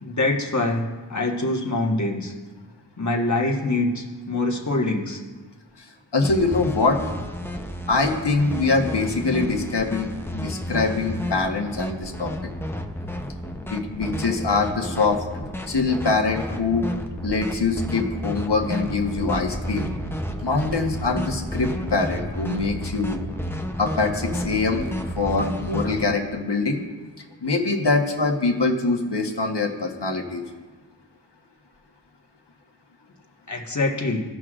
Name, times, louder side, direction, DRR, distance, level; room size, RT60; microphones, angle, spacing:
voice 1, 0.0-2.3 3.0-5.2 33.5-34.2, left 2 dB, 40° left, 0 dB, 1.4 m, -24 dB
voice 2, 6.1-7.0 7.9-12.3 13.7-15.2 15.7-16.9 17.2-19.9 20.4-23.2 23.8-26.8 27.4-30.4, left 3 dB, 65° left, 2 dB, 1.3 m, -23 dB
sound 1, 6.2-26.0, equal, 5° left, 0.7 m, -31 dB
sound 2, 19.1-24.7, right 2 dB, 90° right, 2.0 m, -39 dB
17.0 x 6.2 x 2.5 m, 1.4 s
wide cardioid pair, 45°, 44 cm